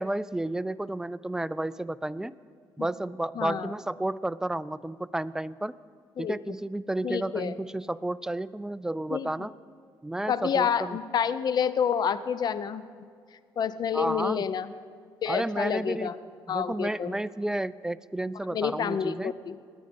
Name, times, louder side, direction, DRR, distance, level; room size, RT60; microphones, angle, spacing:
voice 1, 0.0-2.4 2.8-5.7 6.2-9.5 10.0-11.0 13.9-14.5 15.3-16.1 16.5-19.3, right 1 dB, 5° right, 17 dB, 0.4 m, -31 dB
voice 2, 3.4-3.7 6.2-6.4 7.0-7.5 9.1-9.3 10.3-12.8 13.6-14.7 15.2-16.1 16.5-17.2 18.5-19.5, left 8 dB, 50° left, 14 dB, 0.7 m, -28 dB
21.0 x 8.6 x 5.3 m, 2.1 s
cardioid pair, 90°, 9 cm